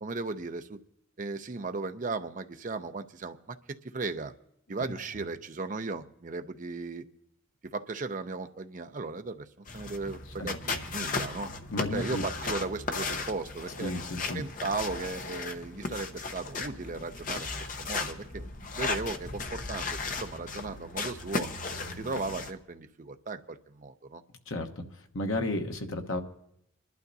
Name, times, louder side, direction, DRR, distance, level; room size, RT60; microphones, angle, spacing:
voice 1, 0.0-0.8 1.2-4.3 4.7-7.1 7.7-9.5 9.7-11.5 11.9-13.9 14.3-21.5 21.9-24.2, right 3 dB, 40° right, 8 dB, 0.5 m, -36 dB
sound 1, 9.7-22.5, left 4 dB, 40° left, 0.8 m, -36 dB
voice 2, 11.7-12.2 13.8-14.4 24.5-24.8 25.1-26.2, left 2 dB, 75° left, 4 dB, 1.1 m, -32 dB
27.0 x 11.5 x 2.7 m, 0.76 s
head